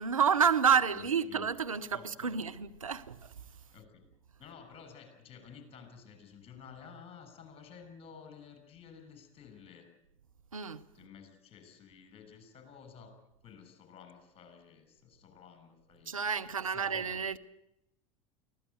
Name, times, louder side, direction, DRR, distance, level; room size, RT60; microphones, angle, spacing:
voice 1, 0.0-3.3 10.5-11.1 16.1-17.4, right 7 dB, 85° right, 0.9 m, -29 dB
voice 2, 0.9-1.5 1.9-2.4 3.7-4.1 4.4-9.9 10.9-16.2 16.6-17.1, left 6 dB, 35° left, 6.8 m, -53 dB
23.5 x 16.5 x 9.3 m
figure-of-eight pair, 75°, 17 cm